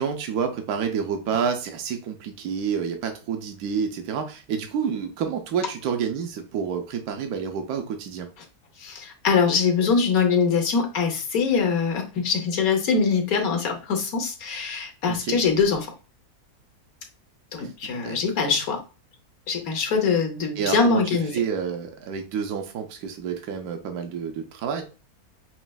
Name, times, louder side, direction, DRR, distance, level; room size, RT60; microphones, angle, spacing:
voice 1, 0.0-8.3 15.1-15.4 18.0-18.2 20.6-21.0 21.3-24.8, right 7 dB, 75° right, 5 dB, 1.3 m, -28 dB
voice 2, 8.8-15.9 17.5-18.8 19.5-21.3, left 5 dB, 70° left, 4 dB, 1.3 m, -23 dB
5.9 x 3.1 x 2.3 m, 0.34 s
omnidirectional pair, 1.6 m